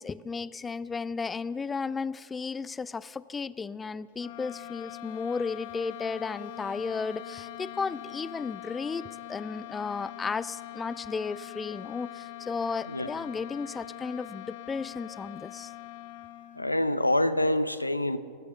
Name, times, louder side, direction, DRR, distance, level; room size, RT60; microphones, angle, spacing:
voice 1, 0.0-9.0 9.3-15.7, left 5 dB, 15° left, 0.4 m, -34 dB
sound 1, 4.1-16.9, left 14 dB, 50° left, 0.8 m, -43 dB
voice 2, 16.6-18.2, left 1 dB, 85° left, 0.6 m, -26 dB
20.0 x 8.3 x 7.2 m
figure-of-eight pair, 90°, 0 cm